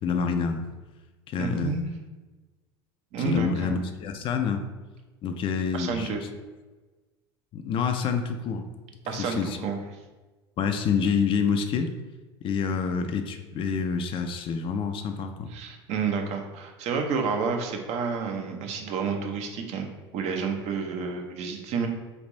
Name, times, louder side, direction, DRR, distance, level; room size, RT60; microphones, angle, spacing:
voice 1, 0.0-0.7 1.3-1.8 3.2-4.7 5.2-6.3 7.5-8.7 9.1-9.6 10.6-12.0 12.4-15.5, left 6 dB, 40° left, 6 dB, 0.4 m, -27 dB
voice 2, 1.4-1.8 3.1-3.8 5.7-6.2 9.1-9.8 15.5-19.9 20.1-21.9, right 5 dB, 50° right, 4 dB, 0.7 m, -30 dB
3.3 x 2.5 x 3.9 m, 1.2 s
hypercardioid pair, 80°, 14 cm